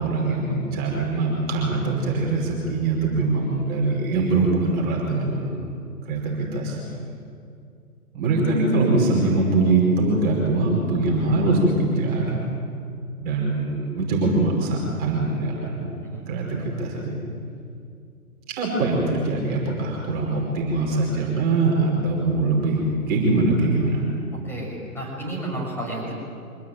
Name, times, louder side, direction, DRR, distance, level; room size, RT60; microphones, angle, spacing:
voice 1, 0.0-5.6 6.0-6.8 8.1-12.5 13.2-15.9 16.3-17.2 18.5-24.0, right 2 dB, 20° right, -2 dB, 5.3 m, -22 dB
voice 2, 16.0-16.3 19.9-20.1 24.4-26.1, right 1 dB, 5° left, -2 dB, 6.7 m, -32 dB
25.5 x 20.0 x 9.3 m, 2.4 s
figure-of-eight pair, 135°, 45 cm